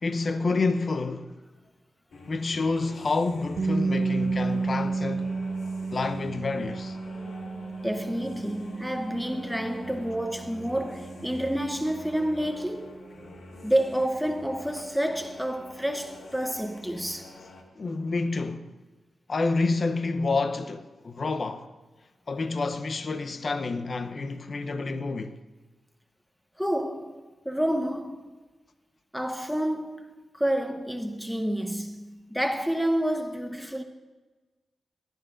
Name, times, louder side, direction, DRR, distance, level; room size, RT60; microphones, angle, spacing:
voice 1, 0.0-1.4 2.3-5.3 5.9-7.0 17.8-18.7 19.3-21.7 22.3-25.4, left 3 dB, 55° left, 0.7 m, -28 dB
sound 1, 2.1-17.6, left 2 dB, 70° left, 1.6 m, -46 dB
sound 2, 3.6-15.4, right 4 dB, 60° right, 0.8 m, -33 dB
voice 2, 7.8-13.0 13.6-17.3 26.6-28.3 29.1-33.8, right 1 dB, ahead, 1.0 m, -29 dB
18.5 x 12.0 x 2.5 m
supercardioid pair, 45°, 0 cm